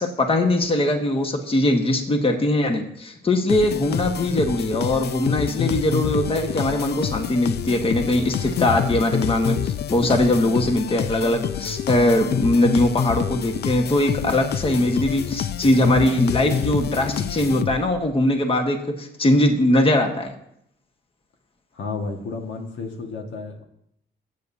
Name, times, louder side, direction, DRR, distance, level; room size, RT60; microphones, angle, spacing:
voice 1, 0.0-20.3, left 1 dB, 30° left, 4 dB, 1.4 m, -21 dB
sound 1, 3.5-18.1, left 9 dB, 55° left, 0.5 m, -27 dB
voice 2, 21.7-23.6, left 4 dB, 70° left, 2 dB, 1.8 m, -32 dB
19.5 x 8.3 x 2.8 m, 0.74 s
cardioid pair, 90°, 20 cm